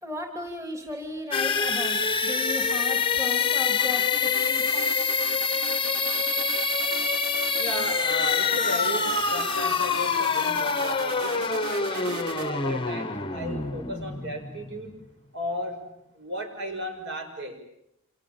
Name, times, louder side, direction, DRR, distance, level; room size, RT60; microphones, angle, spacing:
voice 1, 0.0-4.9, left 1 dB, 15° right, 3 dB, 3.1 m, -36 dB
sound 1, 1.3-15.0, left 5 dB, 25° left, 1.0 m, -26 dB
sound 2, 3.8-12.5, right 5 dB, 75° right, 1.1 m, -39 dB
voice 2, 7.6-15.0 15.3-15.9 16.1-17.6, equal, 55° right, 4 dB, 6.4 m, -35 dB
29.5 x 27.5 x 7.2 m, 0.80 s
head